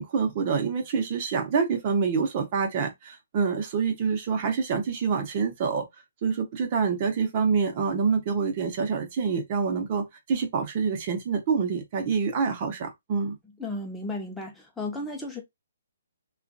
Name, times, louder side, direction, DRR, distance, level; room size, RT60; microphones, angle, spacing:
voice 1, 0.0-5.8 6.2-13.3, right 5 dB, 40° right, 1.0 m, -26 dB
voice 2, 13.6-15.4, left 2 dB, 5° left, 0.8 m, -34 dB
2.9 x 2.4 x 2.6 m
figure-of-eight pair, 135°, 0 cm